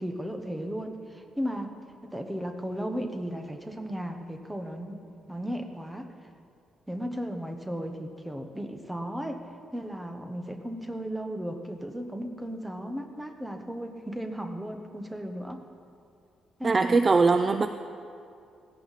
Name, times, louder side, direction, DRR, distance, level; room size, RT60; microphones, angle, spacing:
voice 1, 0.0-1.7 2.0-6.1 6.9-9.5 9.7-15.6 16.6-17.0, equal, 5° right, 5 dB, 1.0 m, -35 dB
voice 2, 16.6-17.7, right 4 dB, 25° right, 8 dB, 0.4 m, -21 dB
17.0 x 16.0 x 4.1 m, 2.4 s
cardioid pair, 160°, 0 cm